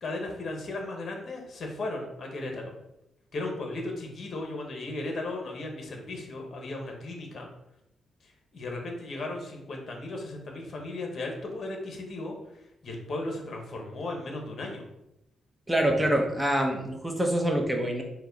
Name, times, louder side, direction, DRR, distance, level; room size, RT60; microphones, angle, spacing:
voice 1, 0.0-2.7 3.3-7.5 8.2-12.4 12.8-14.8, left 2 dB, 50° left, 2 dB, 1.0 m, -36 dB
voice 2, 15.7-18.0, right 1 dB, 5° right, 2 dB, 0.8 m, -25 dB
4.5 x 2.3 x 4.0 m, 0.86 s
cardioid pair, 85°, 0 cm